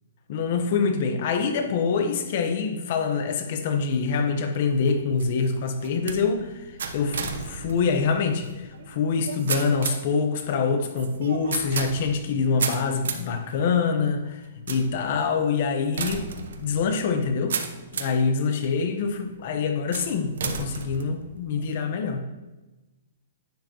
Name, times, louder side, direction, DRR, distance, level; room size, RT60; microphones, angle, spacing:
voice 1, 0.3-6.5 6.9-14.4 14.7-17.6 17.9-22.2, left 5 dB, 45° left, 6 dB, 1.0 m, -25 dB
sound 1, 4.7-18.3 18.8-19.3 19.9-21.7, right 6 dB, 80° right, 0.9 m, -35 dB
10.5 x 7.7 x 3.0 m, 1.1 s
hypercardioid pair, 170°, 0 cm